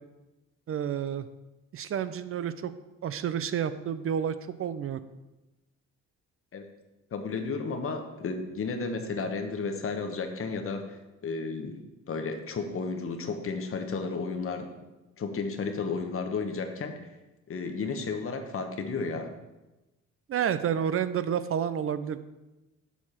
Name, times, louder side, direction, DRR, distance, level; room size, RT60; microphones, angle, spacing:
voice 1, 0.7-1.3 1.7-2.7 3.0-5.0 20.3-22.2, right 8 dB, 50° right, 12 dB, 0.5 m, -30 dB
voice 2, 7.1-11.8 12.1-14.7 15.2-17.0 17.5-19.3, left 4 dB, 45° left, 6 dB, 1.1 m, -33 dB
7.0 x 4.7 x 5.7 m, 1.0 s
cardioid pair, 90°, 30 cm